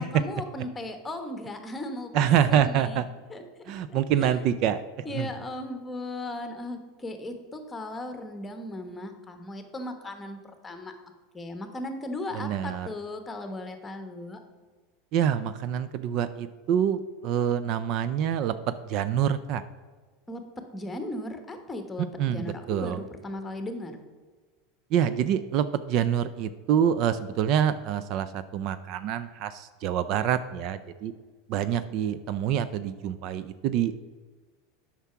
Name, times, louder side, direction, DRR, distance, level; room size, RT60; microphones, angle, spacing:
voice 1, 0.0-2.1 2.5-3.0 3.3-4.4 5.0-11.0 11.3-14.4 20.3-20.4 20.7-24.0, left 1 dB, 10° left, 7 dB, 1.2 m, -37 dB
voice 2, 2.1-3.1 3.7-4.8 5.1-5.3 12.3-12.9 15.1-18.5 18.9-19.6 22.2-23.0 24.9-31.1 31.5-34.0, right 9 dB, 50° right, 13 dB, 0.4 m, -26 dB
8.2 x 5.9 x 5.7 m, 1.4 s
supercardioid pair, 135°, 0 cm